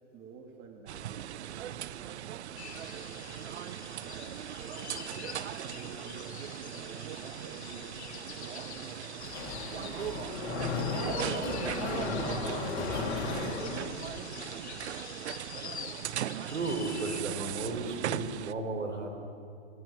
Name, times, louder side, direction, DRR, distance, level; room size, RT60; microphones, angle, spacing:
voice 1, 0.1-1.2 1.6-5.2 5.6-9.0 9.7-13.0 13.3-14.8, right 5 dB, 30° right, 2 dB, 2.9 m, -49 dB
sound 1, 0.9-18.5, right 11 dB, 65° right, 0.8 m, -39 dB
sound 2, 2.6-17.2, left 9 dB, 65° left, 1.3 m, -47 dB
Mechanisms, 9.2-14.4, left 4 dB, 50° left, 3.6 m, -35 dB
voice 2, 16.5-19.1, right 3 dB, 90° right, 4 dB, 4.3 m, -34 dB
25.0 x 17.0 x 7.4 m, 2.4 s
hypercardioid pair, 125°, 35 cm